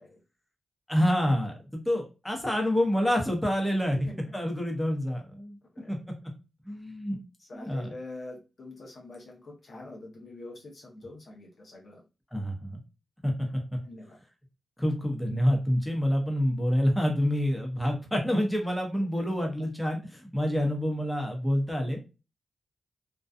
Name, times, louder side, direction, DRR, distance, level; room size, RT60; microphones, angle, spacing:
voice 1, 0.9-4.0 4.3-5.6 5.9-6.0 6.6-7.2 7.5-7.9 12.3-12.8 13.2-13.3 13.7-13.8 14.8-22.1, equal, 5° left, 2 dB, 0.9 m, -27 dB
voice 2, 5.6-5.9 7.4-12.0 13.4-14.2, left 2 dB, 60° left, 0 dB, 0.8 m, -45 dB
2.6 x 2.2 x 2.3 m, 0.29 s
cardioid pair, 65°, 0 cm